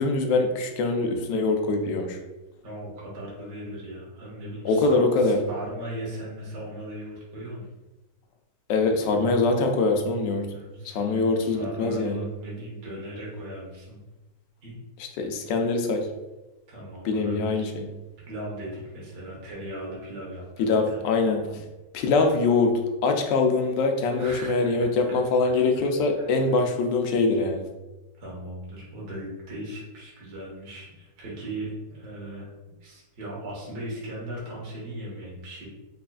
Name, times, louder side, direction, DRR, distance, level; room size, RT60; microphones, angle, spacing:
voice 1, 0.0-2.2 4.6-5.4 8.7-10.5 10.8-12.2 15.0-16.1 17.0-17.9 20.6-21.7 21.9-27.7, left 3 dB, 80° left, 4 dB, 1.2 m, -23 dB
voice 2, 2.6-7.7 10.5-14.0 14.6-14.8 16.7-17.7 18.3-21.0 22.1-22.3 24.2-24.7 25.5-25.6 26.1-26.3 28.2-32.5 32.8-35.7, right 1 dB, 45° right, -5 dB, 1.3 m, -38 dB
4.1 x 3.4 x 2.3 m, 1.1 s
omnidirectional pair, 2.0 m